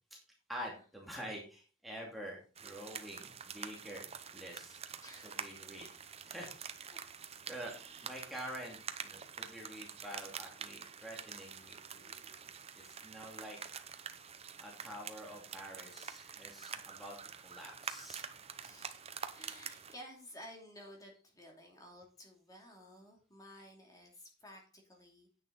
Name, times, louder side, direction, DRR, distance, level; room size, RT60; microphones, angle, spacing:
voice 1, 0.5-4.1 4.3-4.8 5.2-5.9 6.2-6.5 6.8-7.0 7.5-13.6 14.6-18.3, equal, ahead, -2 dB, 2.5 m, -47 dB
sound 1, 2.5-19.9, right 7 dB, 30° right, 0.8 m, -47 dB
voice 2, 5.0-5.5 6.9-7.0 7.6-8.1 12.0-12.1 18.6-19.1 19.3-25.3, equal, 20° left, 0 dB, 2.8 m, -54 dB
9.9 x 8.8 x 4.0 m, 0.36 s
head